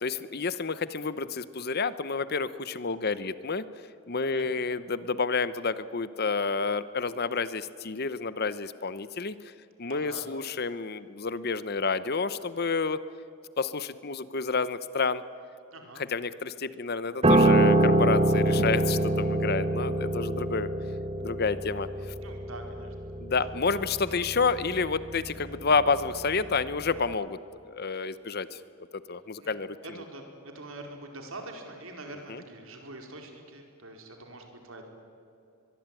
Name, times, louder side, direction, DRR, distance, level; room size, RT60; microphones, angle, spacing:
voice 1, 0.0-3.6 4.1-9.4 9.8-13.0 13.6-15.2 16.1-20.7 21.2-21.9 23.2-28.6 29.1-29.8 32.3-32.4, left 4 dB, 45° left, 15 dB, 0.8 m, -29 dB
voice 2, 9.8-10.2 15.7-16.0 22.2-22.9 27.9-28.1 29.4-29.6 29.8-34.8, right 2 dB, 65° right, 3 dB, 4.5 m, -44 dB
Piano, 17.2-26.6 26.9-27.1, right 2 dB, 25° right, 1.4 m, -25 dB
23.5 x 22.5 x 9.1 m, 2.6 s
head